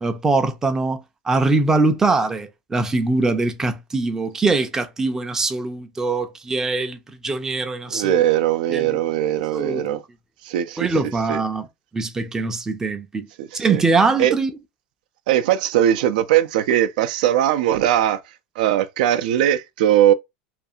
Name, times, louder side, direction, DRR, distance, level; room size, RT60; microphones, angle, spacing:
voice 1, 0.0-8.2 8.7-9.0 9.5-10.0 10.8-11.7 11.9-13.3 13.5-14.5, right 3 dB, 10° right, 0.4 m, -22 dB
voice 2, 7.9-10.0 10.4-10.9 11.3-11.4 13.4-13.8 14.2-14.3 15.3-18.2 18.6-20.1, right 11 dB, 75° right, 0.3 m, -19 dB
2.4 x 2.3 x 2.7 m
supercardioid pair, 140°, 5 cm